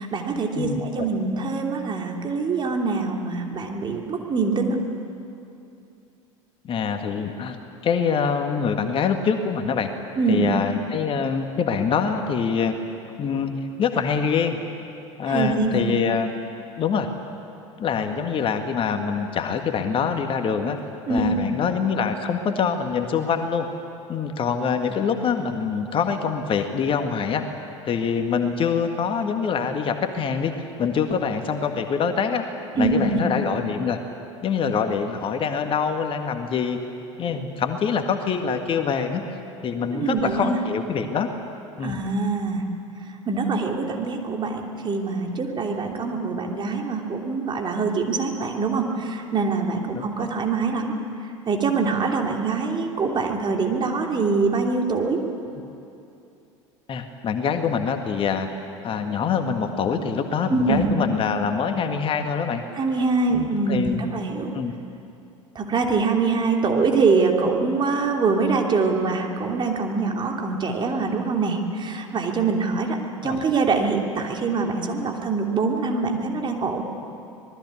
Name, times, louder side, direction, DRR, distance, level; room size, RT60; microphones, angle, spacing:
voice 1, 0.0-4.8 10.2-10.5 15.2-15.8 21.1-21.4 32.8-33.2 39.9-40.6 41.8-42.7 43.3-50.9 51.5-55.2 60.5-60.9 62.8-64.5 65.5-73.0 73.2-76.8, right 4 dB, 30° right, 2 dB, 3.0 m, -24 dB
voice 2, 0.6-1.1 6.6-7.6 7.8-9.9 10.3-12.7 13.2-14.6 15.2-16.3 16.8-17.1 17.8-20.8 21.1-23.7 24.1-27.4 27.9-30.5 30.8-32.4 32.7-34.0 34.4-36.8 37.2-39.2 39.6-41.3 41.8-42.0 49.9-50.3 56.9-58.5 58.8-62.6 63.3-64.1 64.5-64.7 73.2-73.5, left 6 dB, 35° left, 6 dB, 1.8 m, -25 dB
25.5 x 20.0 x 8.5 m, 2.7 s
figure-of-eight pair, 70°, 16 cm